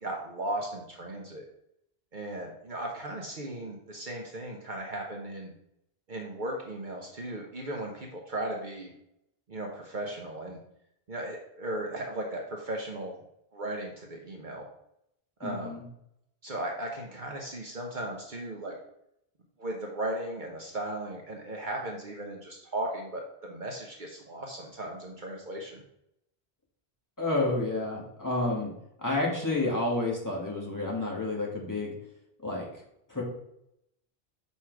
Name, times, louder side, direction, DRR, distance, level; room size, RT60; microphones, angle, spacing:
voice 1, 0.0-1.5 2.1-5.5 6.1-8.9 9.5-10.6 11.1-13.1 13.5-14.7 15.4-15.8 16.4-18.7 19.6-25.8, right 1 dB, 50° right, 0 dB, 1.0 m, -36 dB
voice 2, 15.4-15.8 27.2-28.7 29.0-31.9 32.4-32.7 33.1-33.2, left 2 dB, 20° left, -3 dB, 1.7 m, -30 dB
6.0 x 4.2 x 4.6 m, 0.77 s
omnidirectional pair, 1.0 m